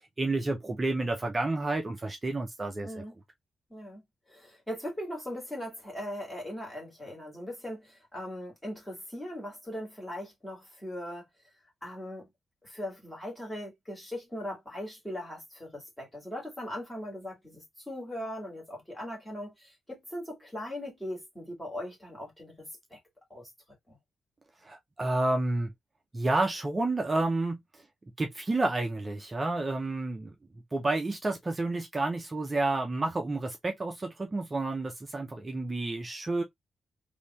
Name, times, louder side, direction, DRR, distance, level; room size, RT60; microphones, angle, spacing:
voice 1, 0.0-3.0 24.6-25.7 26.1-27.6 28.2-30.3 30.7-36.4, right 2 dB, 20° right, 0.5 m, -30 dB
voice 2, 2.8-3.1 3.7-4.0 4.3-11.3 11.8-12.3 12.6-23.0 23.3-23.5 23.9-24.0, left 1 dB, 10° left, 2.1 m, -39 dB
3.5 x 2.7 x 2.9 m
wide cardioid pair, 155°, 0 cm